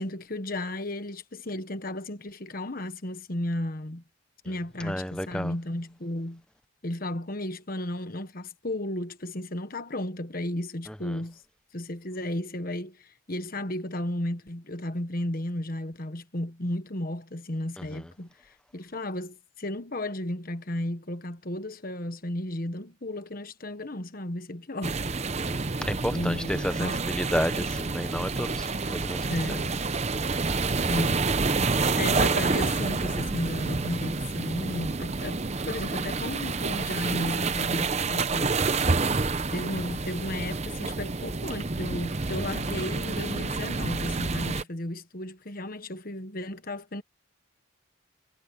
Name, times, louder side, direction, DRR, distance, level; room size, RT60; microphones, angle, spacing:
voice 1, 0.0-4.0 4.4-6.4 6.8-11.4 11.7-25.0 25.3-25.4 26.1-27.0 29.3-29.7 30.8-31.2 31.7-38.6 39.5-47.0, left 1 dB, 45° left, 1.3 m, -34 dB
voice 2, 4.8-5.5 25.4-29.3, equal, 5° left, 0.8 m, -31 dB
sound 1, 24.8-44.6, right 3 dB, 30° right, 0.7 m, -28 dB
head